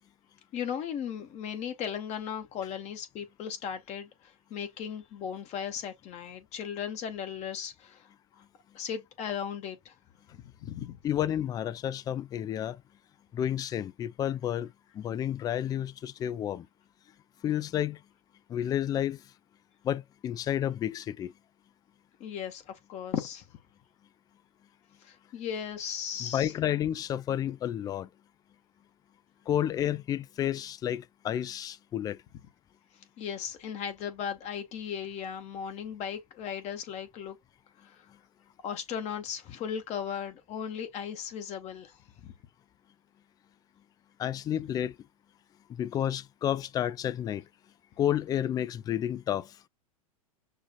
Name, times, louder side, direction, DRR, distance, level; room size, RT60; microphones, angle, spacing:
voice 1, 0.5-8.1 8.7-9.9 10.6-11.0 22.2-23.4 25.0-26.5 33.2-37.4 37.8-38.1 38.6-42.3, left 8 dB, 40° left, 0.9 m, -37 dB
voice 2, 11.0-12.8 13.3-16.7 17.4-18.0 18.5-19.2 19.8-21.3 26.2-28.1 29.5-32.2 44.2-44.9 45.7-47.4 48.0-49.5, left 10 dB, 20° left, 0.3 m, -31 dB
6.4 x 2.4 x 2.3 m
hypercardioid pair, 100°, 19 cm